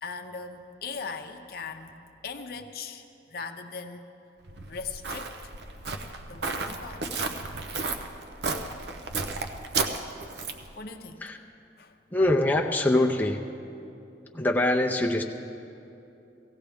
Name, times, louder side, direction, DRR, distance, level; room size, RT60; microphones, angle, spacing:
voice 1, 0.0-4.1 4.7-5.4 6.3-7.1 10.8-11.2 11.8-12.0, left 5 dB, 60° left, 6 dB, 0.7 m, -39 dB
Walk footsteps, 4.5-10.7, right 4 dB, 70° right, 0.8 m, -33 dB
voice 2, 12.1-13.4 14.3-15.2, left 1 dB, 10° left, 0 dB, 0.6 m, -23 dB
18.0 x 15.5 x 3.5 m, 2.8 s
head